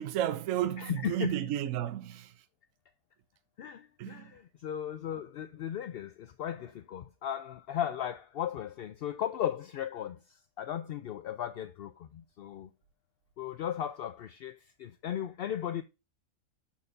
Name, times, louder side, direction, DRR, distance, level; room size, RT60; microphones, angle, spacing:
voice 1, 0.0-2.3 4.0-4.2, right 12 dB, 75° right, 1.0 m, -32 dB
voice 2, 0.8-1.4 3.6-12.7 13.4-15.8, left 10 dB, 65° left, 0.6 m, -36 dB
7.2 x 6.5 x 2.6 m
omnidirectional pair, 1.4 m